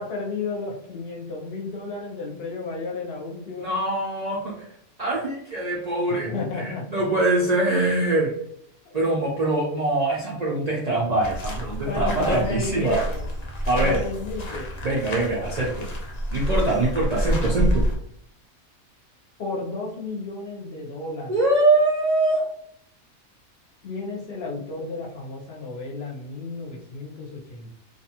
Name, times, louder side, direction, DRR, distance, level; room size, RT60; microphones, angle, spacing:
voice 1, 0.0-3.7 6.1-6.9 11.8-13.2 13.7-14.7 19.4-21.4 23.8-27.7, left 3 dB, 55° left, -1 dB, 0.8 m, -32 dB
voice 2, 3.6-4.7 5.0-8.3 8.9-13.0 13.7-14.0 14.8-15.8 16.3-17.8 21.3-22.4, right 2 dB, 85° right, -4 dB, 0.3 m, -23 dB
sound 1, 11.2-18.0, equal, 85° left, 0.3 m, -28 dB
2.5 x 2.3 x 2.8 m, 0.67 s
omnidirectional pair, 1.5 m